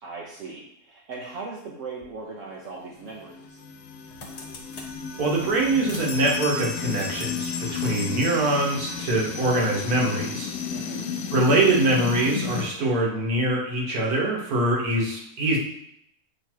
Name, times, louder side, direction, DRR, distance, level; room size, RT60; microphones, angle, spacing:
voice 1, 0.0-3.6 10.7-11.1, right 4 dB, 60° right, -2 dB, 1.1 m, -38 dB
sound 1, 2.0-2.1 3.4-3.6 3.9-4.9 5.8-7.3, left 2 dB, 40° left, 1.1 m, -44 dB
sound 2, 2.8-12.7, left 6 dB, 70° left, 1.0 m, -33 dB
sound 3, 4.9-5.0 5.4-5.7 5.9-9.1, left 4 dB, 85° left, 1.1 m, -37 dB
voice 2, 5.2-10.5 11.3-15.6, right 2 dB, 75° right, -2 dB, 1.8 m, -23 dB
7.8 x 3.2 x 4.5 m, 0.75 s
omnidirectional pair, 1.6 m